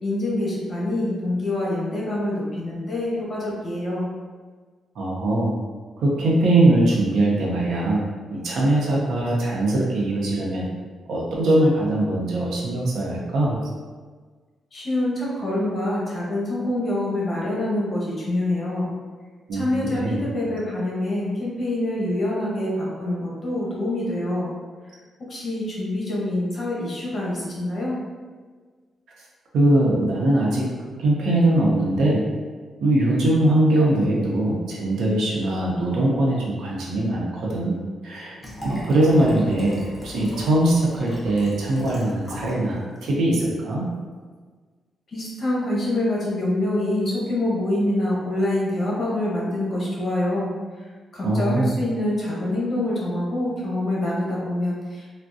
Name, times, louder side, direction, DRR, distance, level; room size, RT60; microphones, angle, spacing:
voice 1, 0.0-4.1 14.7-18.9 19.5-24.5 25.3-28.0 45.1-50.9 51.1-55.2, left 1 dB, 40° left, -5 dB, 0.9 m, -26 dB
voice 2, 5.0-5.5 6.0-10.7 11.1-13.6 19.5-19.7 19.9-20.3 29.5-30.7 31.0-32.3 32.8-38.4 38.6-43.9 51.2-51.8, right 1 dB, 75° right, -4 dB, 0.7 m, -21 dB
Liquid, 38.4-42.6 43.0-43.1, left 1 dB, 10° left, 0.8 m, -38 dB
3.5 x 2.2 x 2.6 m, 1.5 s
cardioid pair, 125°, 0 cm